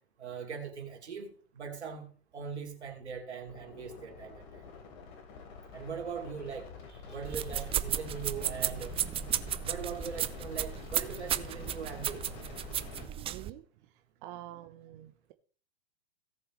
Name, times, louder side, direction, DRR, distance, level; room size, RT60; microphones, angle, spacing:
voice 1, 0.2-2.1 2.3-4.6 5.7-9.0 9.6-12.2, right 6 dB, 85° right, 2 dB, 2.9 m, -41 dB
sound 1, 3.5-13.1, left 5 dB, 55° left, 3.4 m, -47 dB
sound 2, 7.2-13.5, right 10 dB, 15° right, 0.4 m, -34 dB
voice 2, 12.9-15.3, right 15 dB, 50° right, 9 dB, 0.8 m, -48 dB
17.5 x 7.0 x 3.2 m, 0.43 s
hypercardioid pair, 105°, 33 cm